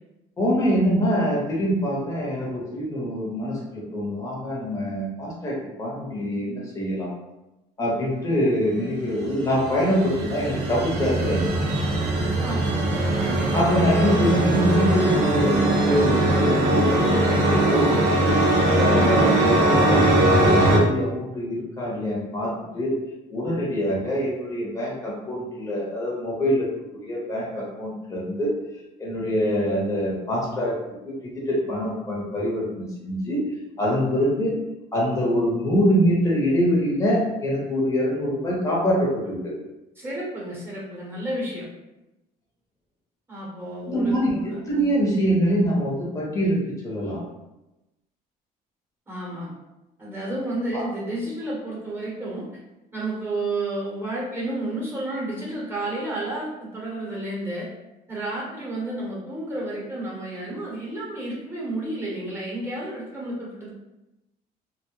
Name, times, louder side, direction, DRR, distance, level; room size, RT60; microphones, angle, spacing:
voice 1, 0.4-7.1 7.8-11.5 13.5-18.3 18.7-23.0 23.3-26.7 27.0-28.5 29.0-33.4 33.8-34.6 34.9-39.6 43.8-44.3 44.7-47.3 50.7-50.8, equal, 20° left, -4 dB, 0.8 m, -24 dB
sound 1, 9.2-20.8, right 1 dB, 75° right, 0.6 m, -21 dB
voice 2, 12.4-12.9 40.0-41.7 43.3-44.6 49.1-49.5 50.0-52.4 52.9-57.7 58.1-63.7, right 1 dB, 15° right, -5 dB, 0.9 m, -31 dB
2.2 x 2.0 x 3.0 m, 0.97 s
cardioid pair, 110°, 17 cm